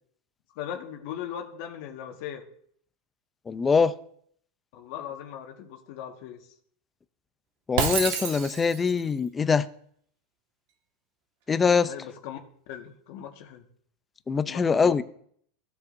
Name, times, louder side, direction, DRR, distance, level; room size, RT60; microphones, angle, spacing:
voice 1, 0.5-2.4 4.7-6.4 11.8-12.4 12.7-13.7 14.4-15.0, left 9 dB, 60° left, 2 dB, 1.6 m, -39 dB
voice 2, 3.5-3.9 7.7-9.7 11.5-11.9 14.3-15.0, left 5 dB, 15° left, 13 dB, 0.5 m, -23 dB
Shatter, 7.8-9.0, right 7 dB, 65° right, 1.6 m, -28 dB
15.5 x 7.1 x 2.7 m, 0.63 s
supercardioid pair, 135°, 0 cm